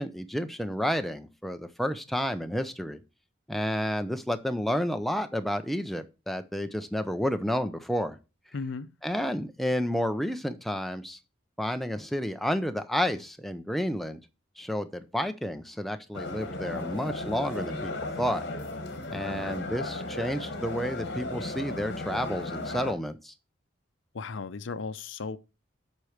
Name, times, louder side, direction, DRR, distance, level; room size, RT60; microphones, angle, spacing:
voice 1, 0.0-3.0 3.5-8.2 9.0-11.2 11.6-14.2 14.6-17.9 18.2-18.4 19.1-23.3, equal, ahead, 0.6 m, -30 dB
voice 2, 8.5-8.9 24.1-25.4, left 4 dB, 80° left, 0.6 m, -35 dB
sound 1, 16.1-22.9, left 2 dB, 60° left, 1.6 m, -35 dB
8.2 x 4.5 x 6.4 m
head